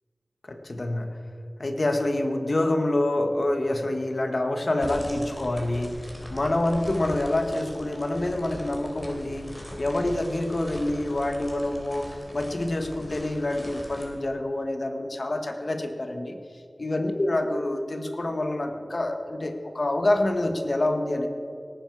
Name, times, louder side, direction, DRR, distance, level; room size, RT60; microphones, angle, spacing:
voice 1, 0.5-1.2 1.6-6.0 6.3-9.5 9.8-16.4 16.8-21.3, left 1 dB, 55° left, 6 dB, 1.3 m, -27 dB
sound 1, 4.8-14.1, equal, 20° left, 3.0 m, -41 dB
17.5 x 9.8 x 4.7 m, 2.4 s
wide cardioid pair, 55°, 0 cm